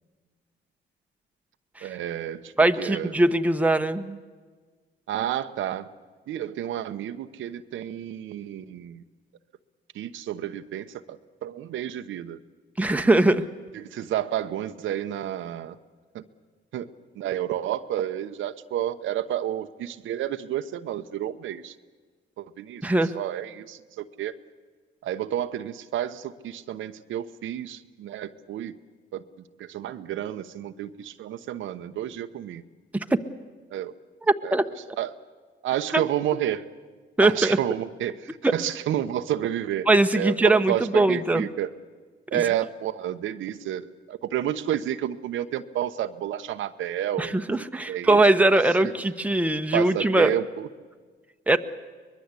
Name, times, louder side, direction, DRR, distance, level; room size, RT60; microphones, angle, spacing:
voice 1, 1.8-3.1 5.1-5.9 6.3-9.0 9.9-12.4 13.7-15.8 16.1-16.2 16.7-16.9 17.1-21.7 22.4-24.4 25.0-28.8 29.1-29.2 29.6-32.6 33.7-33.9 34.4-34.6 35.0-35.2 35.6-36.7 37.2-41.7 42.3-47.3 47.9-48.2 48.8-48.9 49.7-50.7, right 11 dB, 80° right, 9 dB, 1.0 m, -30 dB
voice 2, 2.6-4.2 12.8-13.4 22.8-23.1 32.9-33.2 34.3-34.7 35.9-36.0 37.2-37.6 38.4-38.5 39.9-41.5 42.3-42.4 47.2-50.3 51.5-51.6, right 2 dB, 5° right, 7 dB, 1.1 m, -21 dB
23.5 x 21.0 x 8.3 m, 1.5 s
cardioid pair, 90°, 20 cm